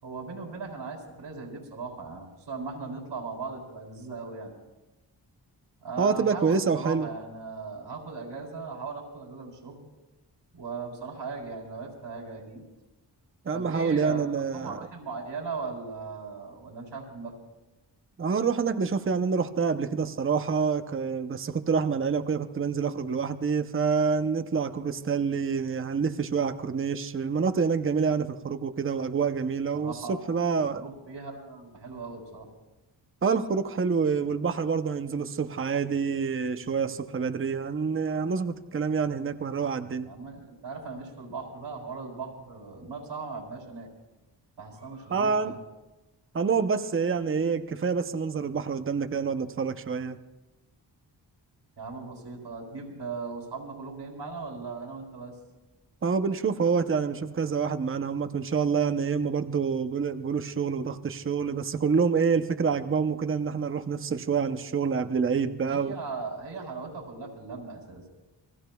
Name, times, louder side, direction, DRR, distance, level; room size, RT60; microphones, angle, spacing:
voice 1, 0.0-4.5 5.8-9.9 10.5-12.6 13.5-17.4 29.7-30.2 30.6-32.5 40.1-43.9 44.6-45.6 51.8-55.3 65.6-68.1, right 4 dB, 85° right, 0 dB, 3.8 m, -38 dB
voice 2, 6.0-7.1 13.5-14.9 18.2-30.8 33.2-40.1 45.1-45.5 46.3-50.2 56.0-66.0, right 5 dB, 30° right, 9 dB, 0.7 m, -27 dB
29.0 x 20.0 x 2.3 m, 1.0 s
wide cardioid pair, 115°, 42 cm